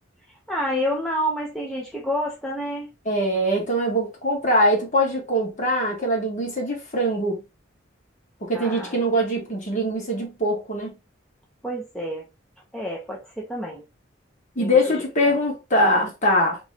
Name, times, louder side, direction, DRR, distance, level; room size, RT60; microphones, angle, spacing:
voice 1, 0.5-2.9 8.5-9.0 11.6-12.3 12.7-13.8 14.6-14.7, equal, ahead, 0.7 m, -28 dB
voice 2, 3.0-7.4 8.4-10.9 14.5-16.6, equal, 40° left, 1.6 m, -22 dB
3.5 x 3.0 x 3.3 m
head